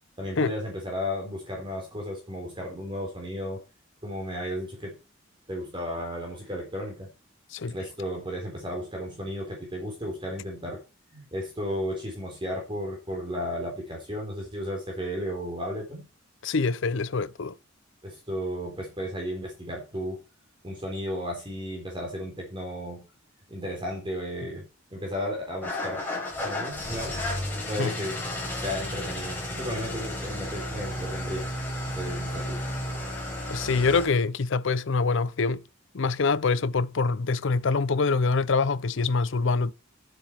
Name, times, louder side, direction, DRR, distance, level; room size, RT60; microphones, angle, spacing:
voice 1, 0.2-3.6 4.0-5.0 5.5-7.1 7.7-10.8 11.1-16.0 18.0-20.2 20.6-23.1 23.5-26.0 26.4-27.2 27.7-28.2 28.6-31.5 31.8-32.6, equal, 25° right, 3.8 m, -34 dB
voice 2, 16.4-17.6 27.8-27.9 33.5-35.6 35.9-39.7, left 4 dB, 65° left, 0.6 m, -25 dB
Engine starting / Idling, 25.6-34.1, left 1 dB, 10° left, 5.2 m, -33 dB
10.0 x 7.6 x 4.5 m
head